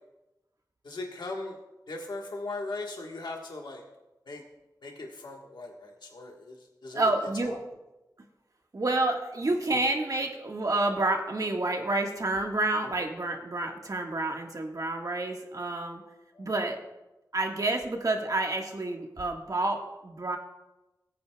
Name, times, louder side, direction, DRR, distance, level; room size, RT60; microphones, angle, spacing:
voice 1, 0.8-1.6 1.9-3.8 4.3-4.4 4.8-7.1 7.4-7.6 16.3-16.5, left 2 dB, 80° left, 0 dB, 1.4 m, -39 dB
voice 2, 6.9-7.6 8.7-16.0 16.4-16.8 17.3-20.4, right 2 dB, 55° right, 2 dB, 1.5 m, -29 dB
19.0 x 9.3 x 2.3 m, 1.0 s
wide cardioid pair, 95°, 7 cm